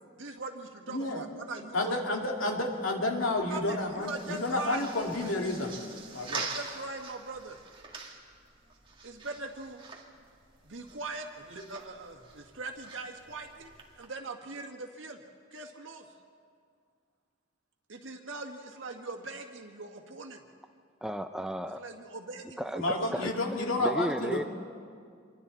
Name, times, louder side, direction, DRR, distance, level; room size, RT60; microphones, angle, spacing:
voice 1, 0.2-2.0 3.5-4.9 6.2-7.6 9.0-9.8 10.6-13.7 14.0-15.2 15.5-16.1 17.9-20.4 21.8-23.2, right 3 dB, 70° right, 3 dB, 1.9 m, -41 dB
voice 2, 0.9-1.2 1.7-5.8 6.1-6.4 22.8-24.4, left 2 dB, 80° left, 1 dB, 2.7 m, -30 dB
sound 1, 3.1-14.1, right 4 dB, 25° right, 2.0 m, -45 dB
voice 3, 21.0-21.8 22.6-23.3 23.8-24.4, equal, 5° right, 8 dB, 0.4 m, -33 dB
27.0 x 23.0 x 4.3 m, 2.2 s
head